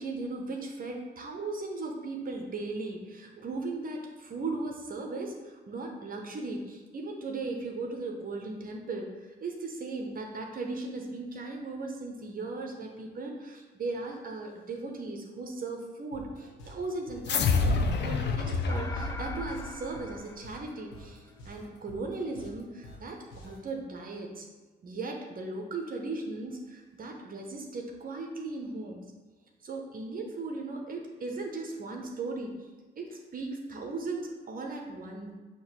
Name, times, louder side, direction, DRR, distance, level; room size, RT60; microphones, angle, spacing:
voice 1, 0.0-17.7 18.0-24.5 24.8-29.0 29.6-32.5 33.0-35.3, right 3 dB, 45° right, 1 dB, 0.9 m, -37 dB
sound 1, 16.1-23.7, left 1 dB, 85° left, 1.3 m, -49 dB
sound 2, 17.3-20.0, left 4 dB, 60° left, 0.7 m, -28 dB
sound 3, 18.7-21.3, left 2 dB, 15° left, 0.4 m, -43 dB
6.4 x 2.9 x 5.7 m, 1.3 s
cardioid pair, 90°, 20 cm